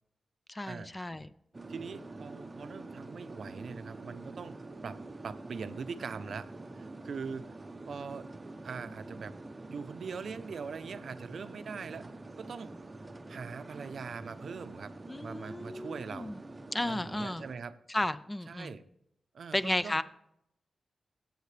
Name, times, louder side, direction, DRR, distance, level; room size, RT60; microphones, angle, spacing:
voice 1, 0.5-1.3 15.1-16.4 16.7-17.4 17.9-18.8 19.5-20.0, left 1 dB, 15° left, 14 dB, 0.4 m, -33 dB
sound 1, 1.5-17.5, right 2 dB, 20° right, 0.7 m, -46 dB
voice 2, 1.7-4.6 4.8-7.5 7.9-8.3 8.6-9.4 9.7-12.1 12.4-12.7 13.3-14.9 15.2-16.3 16.9-17.8 18.5-18.8 19.3-20.0, right 5 dB, 65° right, 12 dB, 0.6 m, -42 dB
16.5 x 8.1 x 3.3 m, 0.75 s
wide cardioid pair, 150°, 0 cm